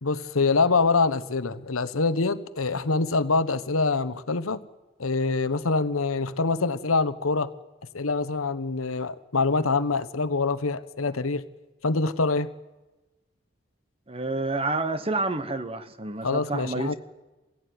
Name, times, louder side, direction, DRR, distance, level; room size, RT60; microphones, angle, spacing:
voice 1, 0.0-4.6 5.0-7.5 7.9-11.4 11.8-12.5 16.2-16.9, left 3 dB, 90° left, 1.1 m, -25 dB
voice 2, 14.1-16.9, right 2 dB, 25° right, 1.0 m, -29 dB
24.0 x 16.0 x 9.6 m
head